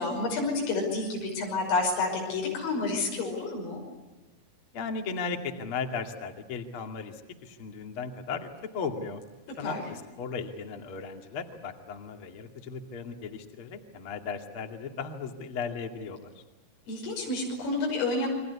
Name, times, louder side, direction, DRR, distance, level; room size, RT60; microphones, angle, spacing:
voice 1, 0.0-3.8 9.6-9.8 16.9-18.3, left 3 dB, 90° left, 0 dB, 8.4 m, -29 dB
voice 2, 4.7-9.2 9.6-16.4, left 5 dB, 40° left, 4 dB, 2.1 m, -36 dB
29.5 x 24.0 x 8.5 m, 1.1 s
omnidirectional pair, 5.8 m